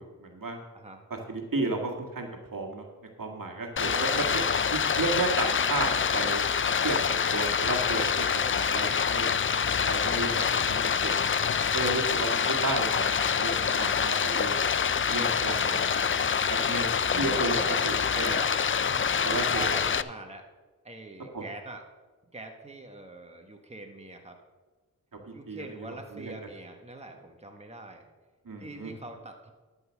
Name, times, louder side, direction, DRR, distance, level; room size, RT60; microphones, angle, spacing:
voice 1, 0.0-0.6 1.1-2.8 3.2-4.4 4.7-6.5 6.8-9.3 9.8-10.4 10.7-14.6 15.1-15.9 16.1-16.2 16.5-18.3 19.2-19.8 21.3-21.4 25.3-26.3 28.5-28.9, right 3 dB, 60° right, 1 dB, 1.9 m, -33 dB
voice 2, 0.7-1.1 3.8-4.5 9.9-10.3 12.3-12.6 17.1-17.8 18.1-18.5 18.8-20.4 20.8-21.8 22.3-24.4 25.3-28.0 28.6-29.5, right 2 dB, 15° right, 3 dB, 1.5 m, -42 dB
Stream, 3.8-20.0, left 6 dB, 35° left, 0.4 m, -26 dB
12.5 x 5.5 x 6.4 m, 1.3 s
cardioid pair, 45°, 37 cm